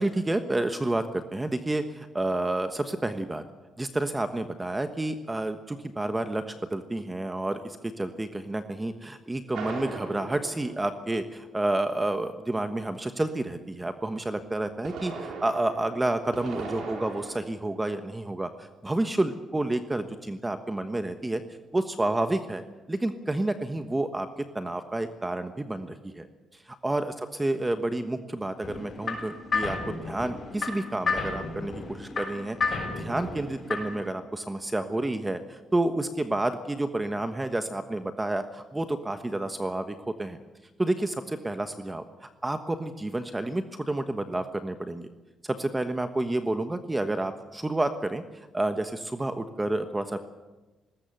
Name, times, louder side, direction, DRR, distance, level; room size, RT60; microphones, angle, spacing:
voice 1, 0.0-3.4 3.8-21.4 21.7-26.3 26.5-27.1 27.4-40.4 40.8-45.1 45.4-50.2, right 2 dB, 15° right, 9 dB, 1.3 m, -30 dB
sound 1, 9.5-11.6 14.6-17.4, right 4 dB, 75° right, 4.4 m, -39 dB
sound 2, 28.6-34.1, left 4 dB, 45° left, 6.7 m, -32 dB
19.5 x 19.0 x 7.9 m, 1.1 s
cardioid pair, 90°, 0 cm